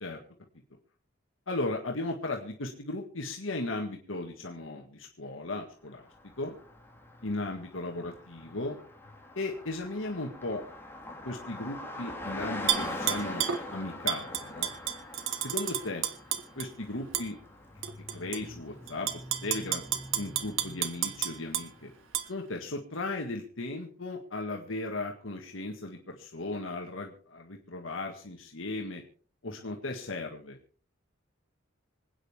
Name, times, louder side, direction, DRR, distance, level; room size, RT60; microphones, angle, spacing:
voice 1, 1.5-6.1 6.4-6.6 7.2-8.8 9.4-10.6 11.2-14.7 15.4-16.1 16.6-17.4 18.1-19.8 20.2-21.9 22.2-29.0 29.4-30.6, left 2 dB, 85° left, 2 dB, 1.8 m, -36 dB
Car passing by, 6.0-22.0, left 1 dB, 10° left, 2.4 m, -43 dB
Tap / Glass, 12.7-13.6 14.1-16.7 17.1-17.3 17.8-18.4 18.9-21.7 22.1-22.3, right 10 dB, 80° right, 1.4 m, -31 dB
26.5 x 9.4 x 3.5 m, 0.43 s
head